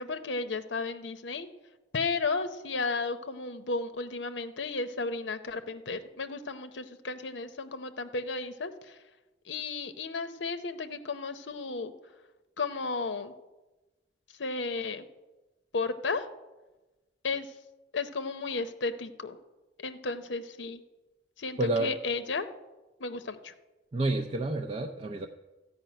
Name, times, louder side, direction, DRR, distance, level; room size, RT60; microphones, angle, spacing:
voice 1, 0.0-1.5 1.9-9.0 9.5-11.9 12.6-13.3 14.4-15.1 15.7-16.3 17.2-17.5 17.9-19.4 19.8-20.8 21.4-22.5 23.0-23.5, left 3 dB, 85° left, 9 dB, 0.8 m, -33 dB
voice 2, 21.6-21.9 23.9-25.3, right 2 dB, 35° right, 3 dB, 0.5 m, -29 dB
14.0 x 5.5 x 8.9 m, 1.1 s
head